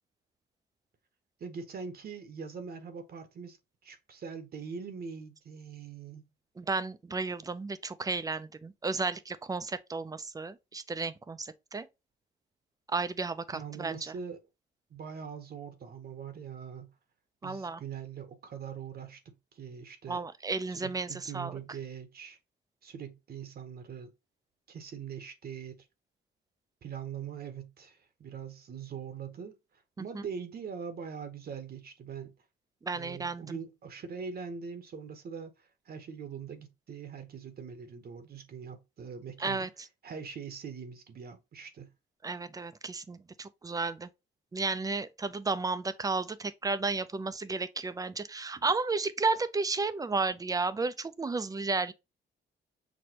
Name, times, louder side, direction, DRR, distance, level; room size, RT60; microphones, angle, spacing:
voice 1, 1.4-3.6 3.8-6.3 13.5-14.4 14.9-16.9 17.4-20.2 20.8-22.4 22.8-24.1 24.7-25.8 26.8-29.6 30.0-32.3 32.9-39.7 40.0-41.9, right 6 dB, 50° right, 0.9 m, -42 dB
voice 2, 6.6-11.9 12.9-14.1 17.4-17.8 20.1-21.6 30.1-30.2 32.8-33.6 39.4-39.7 42.2-44.1 44.5-51.9, right 3 dB, 20° right, 0.4 m, -33 dB
6.1 x 2.2 x 2.7 m
cardioid pair, 90°, 20 cm